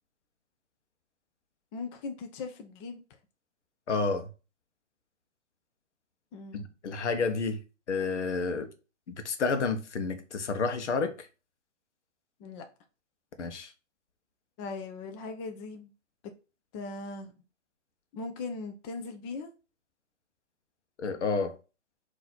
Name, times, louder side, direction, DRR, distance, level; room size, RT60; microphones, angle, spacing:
voice 1, 1.7-3.0 6.3-6.6 12.4-12.7 14.6-15.9 16.7-17.3 18.1-19.5, left 3 dB, 25° left, 0.6 m, -39 dB
voice 2, 3.9-4.3 6.5-7.6 7.9-8.7 9.1-11.3 13.4-13.7 21.0-21.5, left 4 dB, 75° left, 1.0 m, -30 dB
3.9 x 2.8 x 4.2 m
hypercardioid pair, 125°, 36 cm